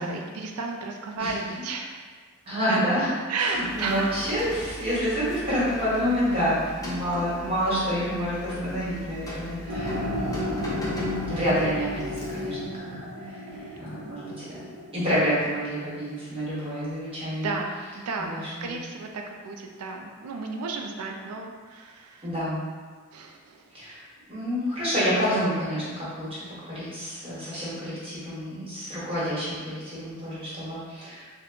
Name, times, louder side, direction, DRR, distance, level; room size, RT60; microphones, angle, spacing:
voice 1, 0.0-2.0 2.7-2.8 3.3-4.1 17.4-22.3 23.1-23.7, right 3 dB, 85° right, 2 dB, 0.4 m, -33 dB
voice 2, 2.4-3.1 3.4-10.6 11.3-14.6 14.9-17.5 18.2-18.7 22.2-22.6 23.7-31.2, equal, 25° right, -10 dB, 1.3 m, -28 dB
Rain, 3.4-12.7, equal, 15° left, 0.5 m, -39 dB
sound 1, 9.7-15.8, left 1 dB, 50° right, 0.8 m, -33 dB
3.6 x 2.2 x 3.6 m, 1.5 s
head